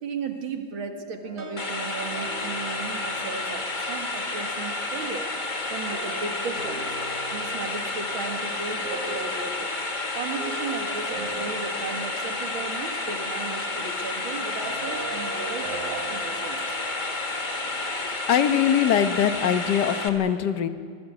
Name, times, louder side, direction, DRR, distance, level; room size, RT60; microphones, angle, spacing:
voice 1, 0.0-5.3 5.7-6.9 7.3-9.7 10.1-16.8, right 5 dB, 90° right, 4 dB, 2.5 m, -35 dB
sound 1, 1.2-4.6 5.9-17.8, right 3 dB, 40° right, 3.2 m, -41 dB
sound 2, 1.6-20.1, left 2 dB, 25° left, 1.5 m, -30 dB
voice 2, 18.0-20.7, left 9 dB, 60° left, 9 dB, 1.5 m, -22 dB
25.5 x 18.5 x 8.1 m, 2.1 s
omnidirectional pair, 2.2 m